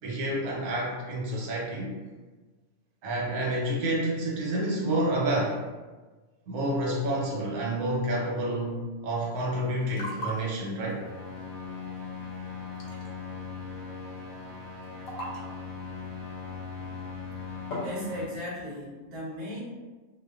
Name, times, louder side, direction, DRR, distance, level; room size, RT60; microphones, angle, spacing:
voice 1, 0.0-1.9 3.0-5.6 6.5-11.0, right 1 dB, 90° right, -3 dB, 1.1 m, -29 dB
sound 1, 9.6-18.5, equal, 70° left, 0.9 m, -43 dB
sound 2, 11.0-18.2, left 5 dB, 65° right, 1.0 m, -39 dB
voice 2, 17.8-19.6, equal, 40° right, -7 dB, 0.7 m, -37 dB
2.4 x 2.3 x 2.3 m, 1.3 s
omnidirectional pair, 1.5 m